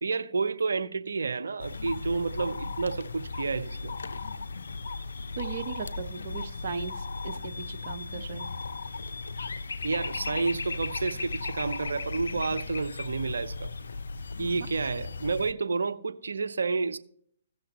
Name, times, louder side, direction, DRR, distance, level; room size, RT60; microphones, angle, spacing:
voice 1, 0.0-3.9 9.8-13.7 14.4-17.0, right 4 dB, 75° right, 0.6 m, -30 dB
sound 1, 1.6-15.5, left 3 dB, 75° left, 0.5 m, -36 dB
voice 2, 5.4-8.5, right 6 dB, 55° right, 0.9 m, -37 dB
16.5 x 6.4 x 3.0 m
figure-of-eight pair, 130°, 0 cm